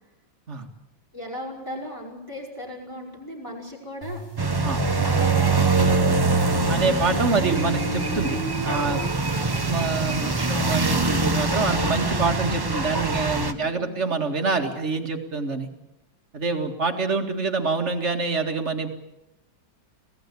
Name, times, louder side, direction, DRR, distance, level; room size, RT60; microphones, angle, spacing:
voice 1, 1.1-4.2 5.0-6.4 9.0-10.0 10.3-10.7 13.5-14.0, left 1 dB, 10° left, -1 dB, 5.9 m, -37 dB
sound 1, 4.0-9.0, left 1 dB, 45° left, 7.3 m, -35 dB
sound 2, 4.4-13.5, right 3 dB, 20° right, 0.7 m, -23 dB
voice 2, 6.7-8.4 8.6-9.0 9.6-15.7 16.3-18.9, right 4 dB, 35° right, 4 dB, 2.3 m, -26 dB
26.0 x 17.5 x 8.4 m, 0.94 s
omnidirectional pair, 2.1 m